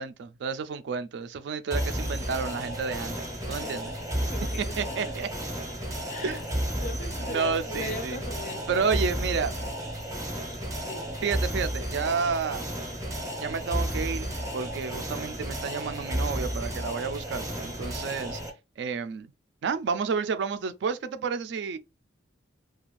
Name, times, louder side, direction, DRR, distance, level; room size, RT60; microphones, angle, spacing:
voice 1, 0.0-3.2 3.5-3.9 4.8-5.3 6.2-6.4 7.3-8.2 8.7-9.5 11.2-12.7 13.4-18.4 18.8-19.3 19.6-21.8, right 5 dB, 60° right, 0.3 m, -30 dB
sound 1, 1.7-2.3 2.5-4.9 6.1-6.7 7.0-7.2 8.5-9.0 9.5-9.8 10.5-11.0 11.6-12.3 12.8-12.9 13.3-14.0 14.6-15.0, left 4 dB, 85° left, 0.6 m, -53 dB
sound 2, 1.7-18.5, equal, 15° right, 0.6 m, -32 dB
voice 2, 4.2-5.2 6.1-6.4 6.8-9.0 10.8-11.2, left 2 dB, 40° left, 0.4 m, -39 dB
2.5 x 2.3 x 3.0 m
head